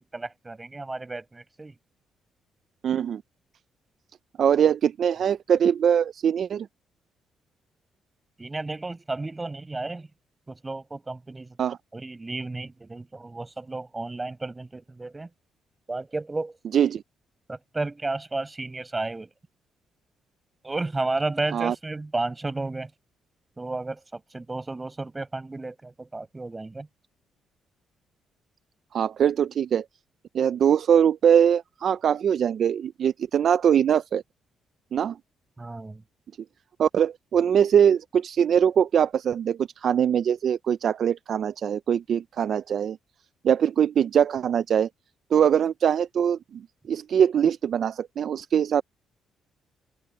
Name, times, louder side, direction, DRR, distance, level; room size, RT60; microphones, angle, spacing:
voice 1, 0.0-1.7 4.4-4.5 8.4-10.1 10.5-11.6 11.9-15.3 15.9-16.6 17.5-19.3 20.6-22.9 23.6-26.9 35.6-36.0, right 2 dB, 20° right, 5.1 m, -32 dB
voice 2, 2.8-3.2 4.4-6.7 11.6-11.8 16.7-17.0 21.5-21.8 28.9-29.8 30.3-34.2 34.9-35.2 36.8-43.0 43.4-44.9 45.3-48.8, right 8 dB, 60° right, 0.5 m, -22 dB
open air
cardioid pair, 90°, 0 cm